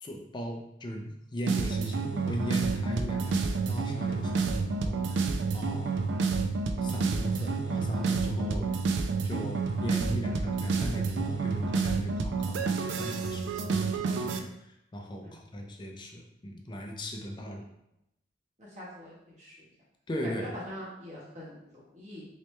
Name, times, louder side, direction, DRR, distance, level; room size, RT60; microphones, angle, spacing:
voice 1, 0.0-6.0 6.7-8.7 9.2-14.5 14.9-17.6 20.1-20.5, equal, 25° left, 2 dB, 0.5 m, -38 dB
sound 1, 1.5-14.4, right 4 dB, 75° right, 0.3 m, -29 dB
voice 2, 18.6-19.5 20.2-22.2, equal, 40° right, -6 dB, 1.3 m, -44 dB
3.2 x 3.0 x 3.2 m, 0.81 s
head